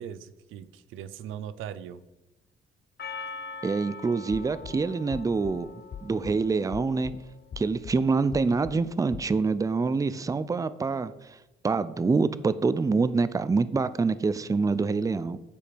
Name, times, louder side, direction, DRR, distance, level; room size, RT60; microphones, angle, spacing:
voice 1, 0.0-2.0, right 9 dB, 90° right, 15 dB, 0.5 m, -39 dB
Percussion, 3.0-7.3, left 4 dB, 55° left, 1.1 m, -43 dB
voice 2, 3.6-5.7 6.0-7.1 7.6-11.4 11.6-15.4, right 4 dB, 15° right, 16 dB, 0.4 m, -26 dB
sound 1, 4.3-4.8 5.1-5.6 5.9-6.4 6.7-7.2 7.5-8.0 8.3-8.8 9.1-9.2, left 8 dB, 40° left, 0.5 m, -40 dB
11.5 x 4.9 x 5.2 m, 1.0 s
cardioid pair, 90°, 20 cm